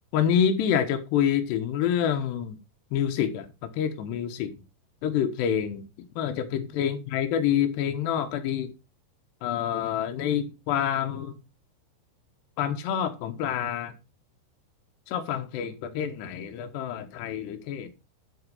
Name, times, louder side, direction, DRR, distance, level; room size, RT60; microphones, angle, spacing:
voice 1, 0.1-2.6 2.9-4.5 5.0-5.8 6.2-8.7 9.4-11.4 12.6-13.9 15.1-17.9, left 9 dB, 75° left, 3.2 m, -27 dB
11.5 x 6.1 x 5.4 m
omnidirectional pair, 5.2 m